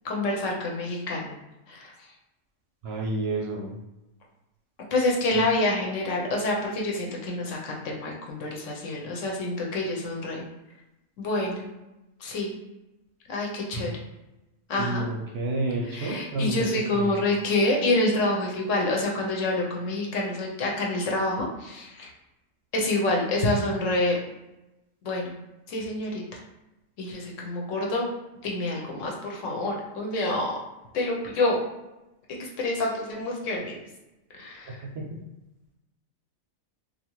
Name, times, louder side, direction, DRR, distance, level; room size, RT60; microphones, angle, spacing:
voice 1, 0.0-1.3 1.7-1.9 4.9-10.5 11.2-11.7 12.2-12.6 13.3-13.9 14.7-15.0 15.9-22.1 22.7-24.2 25.0-25.3 25.7-26.4 27.0-28.1 28.4-30.6 30.9-31.6 32.3-33.8 34.4-34.8, left 2 dB, 70° left, -2 dB, 0.9 m, -27 dB
voice 2, 2.8-3.7 13.7-13.9 14.8-17.1 34.9-35.2, right 2 dB, 65° right, -2 dB, 0.7 m, -30 dB
2.6 x 2.4 x 2.9 m, 0.97 s
omnidirectional pair, 1.5 m